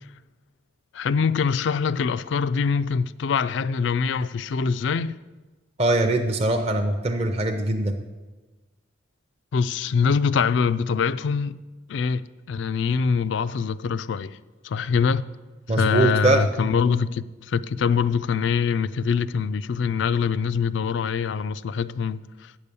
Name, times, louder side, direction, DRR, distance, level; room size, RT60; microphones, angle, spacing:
voice 1, 0.9-5.2 9.5-11.6 11.9-14.4 14.6-15.3 15.7-22.5, left 6 dB, 65° left, 0.3 m, -24 dB
voice 2, 5.8-8.0 15.7-16.5, right 2 dB, 35° right, 0.5 m, -22 dB
8.8 x 6.9 x 6.8 m
head